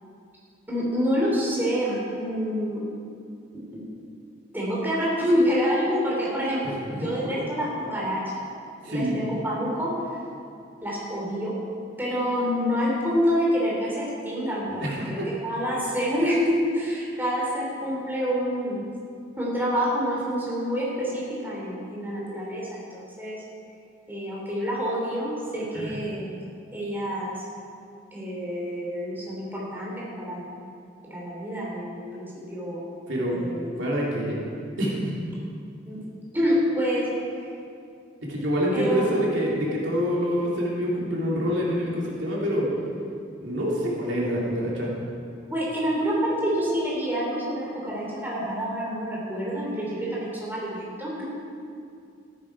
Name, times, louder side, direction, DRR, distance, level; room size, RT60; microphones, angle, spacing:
voice 1, 0.7-2.8 3.5-3.8 4.5-8.4 8.8-9.9 10.8-11.5 12.0-18.8 19.4-23.4 24.1-26.3 26.7-27.4 28.1-30.5 31.0-32.8 33.3-33.7 35.9-36.0 36.3-37.4 38.7-39.1 45.5-51.3, equal, 10° right, -5 dB, 3.0 m, -27 dB
voice 2, 6.6-7.1 8.8-9.2 14.7-15.3 25.7-26.0 33.1-33.4 33.8-34.4 34.8-35.2 38.2-42.7 43.4-44.9, equal, 75° right, -5 dB, 3.1 m, -26 dB
14.0 x 12.0 x 4.8 m, 2.4 s
head